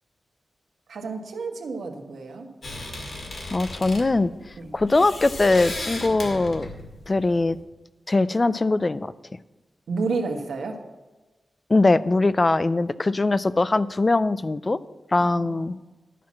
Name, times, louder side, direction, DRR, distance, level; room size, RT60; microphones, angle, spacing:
voice 1, 0.9-2.5 4.6-4.7 9.9-10.8 15.2-15.8, right 4 dB, 90° right, 2 dB, 1.5 m, -31 dB
sound 1, 2.6-7.6, left 2 dB, 50° left, 2.1 m, -36 dB
voice 2, 3.5-4.3 4.7-6.7 7.1-7.6 8.1-9.1 11.7-14.8 15.1-15.8, left 2 dB, 25° left, 16 dB, 0.3 m, -21 dB
11.5 x 6.0 x 7.5 m, 1.2 s
wide cardioid pair, 175°, 0 cm